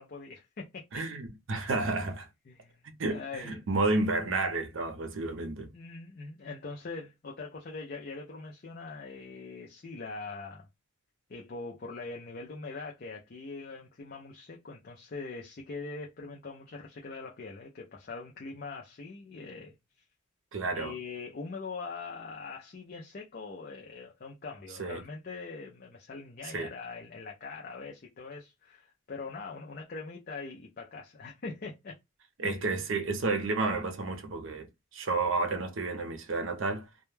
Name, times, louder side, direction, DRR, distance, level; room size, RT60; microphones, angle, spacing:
voice 1, 0.0-0.8 2.5-2.7 3.1-3.6 5.7-10.7 11.3-19.8 20.7-31.9 32.4-32.7, left 4 dB, 45° left, 0.5 m, -42 dB
voice 2, 0.9-2.3 2.8-5.7 20.5-20.9 24.8-25.0 26.5-26.7 32.4-34.7 34.9-36.9, right 3 dB, 65° right, 0.5 m, -31 dB
2.2 x 2.1 x 3.1 m
head